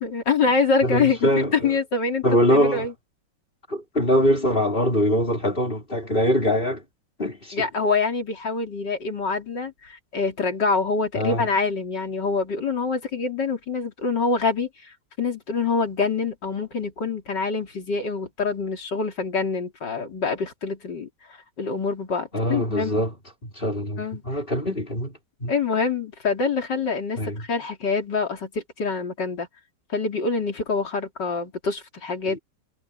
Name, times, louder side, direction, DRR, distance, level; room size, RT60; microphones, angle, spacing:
voice 1, 0.0-2.2 2.5-2.9 7.5-21.1 21.6-23.1 24.0-24.2 25.5-29.5 29.9-32.4, left 4 dB, 75° left, 3.8 m, -25 dB
voice 2, 0.8-1.7 2.2-2.9 3.7-6.8 7.2-7.7 11.2-11.5 22.3-23.1 23.4-25.1 25.4-25.5 27.2-27.4 32.3-32.4, equal, 30° left, 5.5 m, -23 dB
omnidirectional pair, 1.9 m